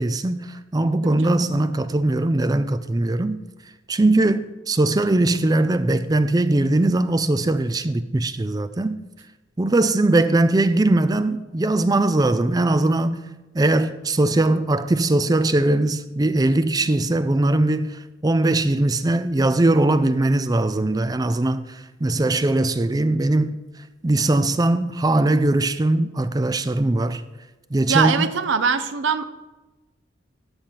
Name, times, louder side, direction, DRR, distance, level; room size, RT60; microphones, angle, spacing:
voice 1, 0.0-3.4 3.9-9.0 9.6-13.2 13.5-23.6 24.0-27.2 27.7-28.2, right 2 dB, 20° right, 0.4 m, -20 dB
voice 2, 1.0-1.5 27.9-29.2, right 6 dB, 65° right, 0.6 m, -22 dB
13.0 x 4.5 x 8.4 m
head